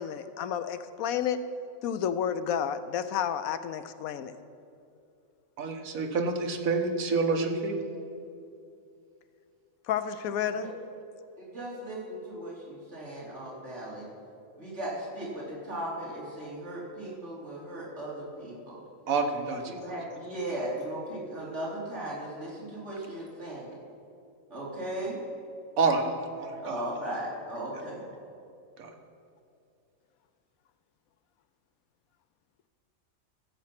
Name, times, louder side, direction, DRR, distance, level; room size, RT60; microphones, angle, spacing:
voice 1, 0.0-1.4 1.8-4.3 9.9-10.7, left 8 dB, 90° left, 12 dB, 1.1 m, -31 dB
voice 2, 5.6-7.8 19.1-19.8 25.8-26.8 28.8-28.9, right 4 dB, 75° right, 4 dB, 1.5 m, -28 dB
voice 3, 11.4-14.1 14.6-18.8 19.7-23.8 24.5-25.2 26.6-28.1, right 1 dB, 55° right, -5 dB, 3.1 m, -37 dB
15.0 x 7.6 x 5.9 m, 2.6 s
omnidirectional pair, 1.4 m